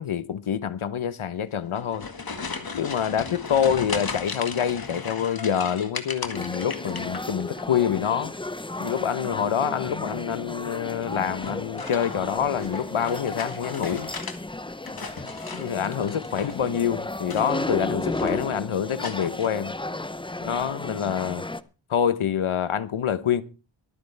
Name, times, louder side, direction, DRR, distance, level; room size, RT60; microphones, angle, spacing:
voice 1, 0.0-2.1 2.7-8.3 8.8-14.1 15.5-19.7 20.4-21.4 21.9-23.4, left 8 dB, 85° left, 1.1 m, -26 dB
sound 1, 1.6-7.6 7.9-8.5 9.9-10.3 11.3-14.4 14.7-16.7 17.2-17.8 18.1-18.5 19.0-19.5, left 4 dB, 45° left, 2.0 m, -37 dB
sound 2, 6.3-21.6, left 2 dB, 10° left, 0.6 m, -34 dB
23.5 x 9.6 x 3.4 m
wide cardioid pair, 130°, 48 cm